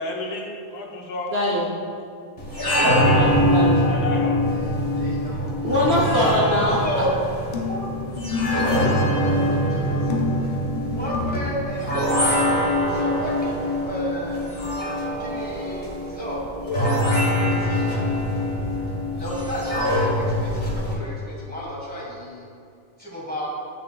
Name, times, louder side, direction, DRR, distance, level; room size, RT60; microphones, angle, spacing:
voice 1, 0.0-1.3 2.6-3.4 3.9-4.4 8.5-8.6 8.8-9.0 9.8-9.9, left 3 dB, 90° left, 0 dB, 1.4 m, -31 dB
voice 2, 1.3-1.7 3.0-3.9 5.6-7.0, left 1 dB, 50° right, -3 dB, 1.0 m, -23 dB
sound 1, 2.4-20.9, equal, 30° left, 1.3 m, -23 dB
voice 3, 4.5-5.5 6.1-7.2 7.7-7.9 9.1-10.3 10.9-12.4 12.9-14.4 15.2-16.6 17.4-18.2 19.2-22.4 23.0-23.5, equal, 5° left, -5 dB, 1.4 m, -32 dB
sound 2, 7.5-9.0 10.1-11.6, left 5 dB, 55° left, 0.4 m, -28 dB
sound 3, 8.7-10.6, left 1 dB, 70° left, 1.2 m, -41 dB
8.6 x 6.3 x 2.3 m, 2.4 s
omnidirectional pair, 1.6 m